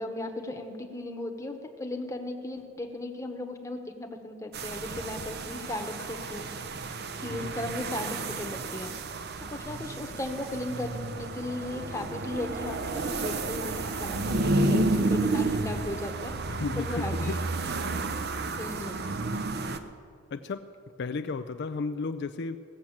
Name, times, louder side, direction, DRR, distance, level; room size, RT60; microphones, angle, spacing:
voice 1, 0.0-6.5 7.2-8.9 9.4-16.3 16.8-17.3 18.6-19.1, left 1 dB, 15° left, 4 dB, 1.1 m, -36 dB
sound 1, 4.5-19.8, right 2 dB, 55° right, 0.7 m, -31 dB
voice 2, 7.3-7.7 16.5-17.4 20.3-20.7 21.0-22.6, left 4 dB, 55° left, 9 dB, 0.4 m, -34 dB
17.0 x 7.8 x 7.2 m, 2.4 s
head